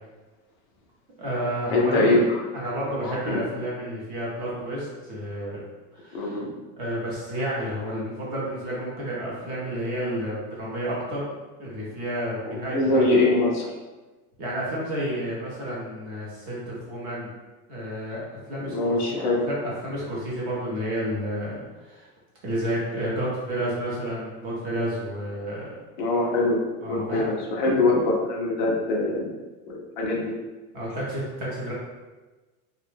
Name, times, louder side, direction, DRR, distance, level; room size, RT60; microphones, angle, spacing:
voice 1, 1.2-2.2 2.5-5.6 5.9-6.4 6.8-11.3 11.6-13.1 14.4-17.3 17.7-18.2 18.5-19.6 19.8-22.1 22.4-25.7 26.8-27.3 27.6-27.8 30.7-31.7, equal, 20° right, -5 dB, 0.5 m, -31 dB
voice 2, 1.7-2.2 3.0-3.4 6.1-6.5 12.4-13.7 18.6-19.5 26.0-29.3 29.7-30.4, left 2 dB, 35° left, -2 dB, 0.4 m, -23 dB
2.9 x 2.2 x 3.1 m, 1.2 s
supercardioid pair, 165°, 46 cm